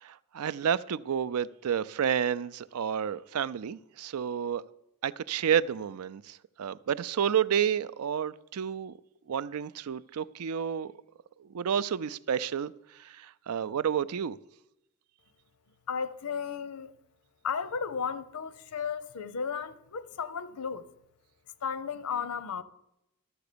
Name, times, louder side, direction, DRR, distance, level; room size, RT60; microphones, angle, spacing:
voice 1, 0.0-4.6 5.0-8.9 9.3-10.9 11.5-12.7 13.0-14.4, right 8 dB, 75° right, 0.4 m, -30 dB
voice 2, 15.9-16.9 17.4-20.8 21.6-22.6, left 6 dB, 80° left, 0.7 m, -34 dB
12.5 x 7.0 x 6.7 m
head